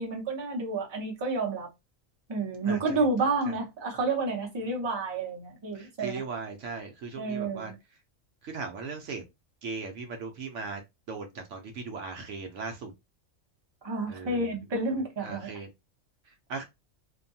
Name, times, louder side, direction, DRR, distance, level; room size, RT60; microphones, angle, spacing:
voice 1, 0.0-1.7 2.3-6.2 7.2-7.7 13.8-15.5, right 3 dB, 25° right, 0.7 m, -30 dB
voice 2, 2.6-3.0 3.5-3.6 5.7-7.7 8.4-9.2 9.6-10.8 11.1-12.9 14.1-14.5 15.2-15.7 16.5-16.6, right 4 dB, 70° right, 0.9 m, -38 dB
2.6 x 2.2 x 2.6 m
omnidirectional pair, 1.3 m